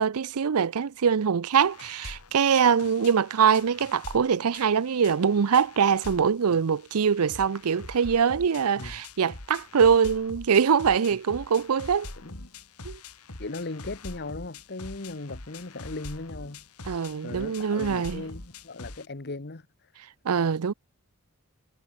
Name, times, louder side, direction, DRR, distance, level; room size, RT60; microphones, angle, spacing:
voice 1, 0.0-12.1 12.8-13.0 16.9-18.2 20.2-20.7, right 7 dB, 75° right, 0.5 m, -23 dB
sound 1, 1.6-19.1, left 2 dB, 90° left, 3.5 m, -44 dB
voice 2, 13.4-16.6 17.2-19.6, left 2 dB, 50° left, 1.3 m, -38 dB
head